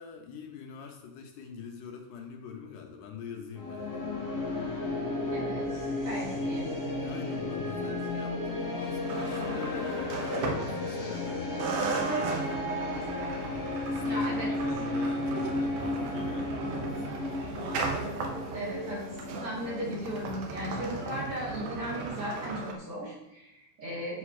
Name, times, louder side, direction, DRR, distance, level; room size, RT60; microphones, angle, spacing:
voice 1, 0.0-4.2 5.3-5.5 5.9-6.5 7.0-12.5 13.5-17.5, left 6 dB, 75° left, 3 dB, 2.3 m, -44 dB
sound 1, 3.5-21.7, left 2 dB, 15° left, 0.6 m, -34 dB
voice 2, 5.3-6.7 14.0-14.5 18.5-24.2, equal, 45° right, -5 dB, 2.6 m, -37 dB
sound 2, 9.1-11.3 11.6-22.7, right 4 dB, 70° right, 2.3 m, -36 dB
sound 3, 11.7-18.1, right 1 dB, 50° left, 1.1 m, -51 dB
9.5 x 4.9 x 4.7 m, 0.91 s
omnidirectional pair, 4.0 m